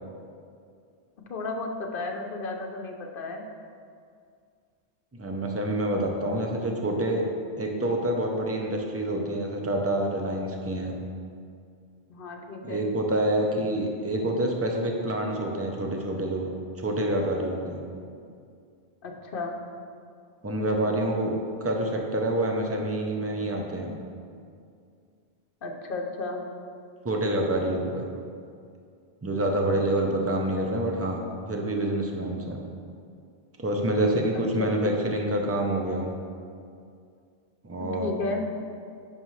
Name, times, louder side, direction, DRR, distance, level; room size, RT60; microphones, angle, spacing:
voice 1, 1.3-3.4 12.1-12.9 19.0-19.6 25.6-26.4 34.3-34.9 37.8-38.4, left 3 dB, 60° left, 2 dB, 0.9 m, -33 dB
voice 2, 5.1-7.2 7.6-10.9 12.6-16.5 16.8-17.8 20.4-21.3 21.6-23.9 27.0-28.0 29.2-31.2 31.5-32.6 33.6-36.1 37.6-38.1, right 1 dB, 15° right, 1 dB, 0.6 m, -27 dB
9.4 x 5.6 x 3.2 m, 2.3 s
omnidirectional pair, 1.1 m